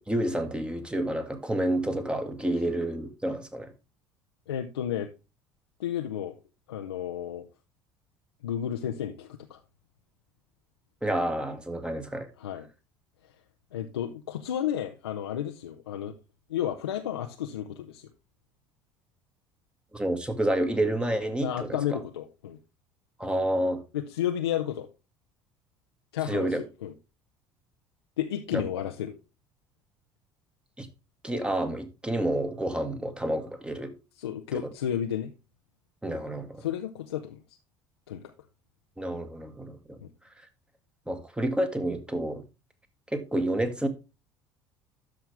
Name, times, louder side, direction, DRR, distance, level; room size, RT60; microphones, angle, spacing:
voice 1, 0.1-3.7 11.0-12.3 19.9-22.0 23.2-23.8 26.3-26.6 28.5-28.6 30.8-30.9 31.2-34.0 36.0-36.6 39.0-40.0 41.1-42.4 43.1-43.9, right 1 dB, 10° right, 1.8 m, -29 dB
voice 2, 4.5-5.1 5.8-6.3 6.7-7.4 8.4-9.6 12.4-12.7 13.7-16.1 16.5-18.1 21.4-22.6 24.1-24.9 26.1-26.5 26.8-26.9 28.2-29.2 34.2-35.3 36.6-37.4 38.1-38.3 40.0-40.1, left 10 dB, 80° left, 0.7 m, -32 dB
13.0 x 5.8 x 3.4 m
figure-of-eight pair, 60°, 13 cm